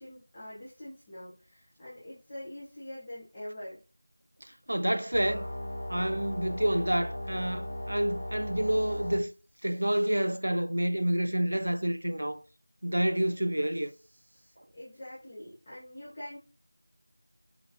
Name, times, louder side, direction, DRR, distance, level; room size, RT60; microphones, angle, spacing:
voice 1, 0.0-3.8 14.7-16.4, left 1 dB, 10° left, 0.4 m, -44 dB
voice 2, 4.7-5.5 5.9-9.3 9.6-12.4 12.8-13.9, right 1 dB, 70° right, 0.4 m, -28 dB
sound 1, 5.1-9.2, left 1 dB, 50° left, 0.8 m, -37 dB
3.0 x 2.5 x 2.4 m
figure-of-eight pair, 180°, 0 cm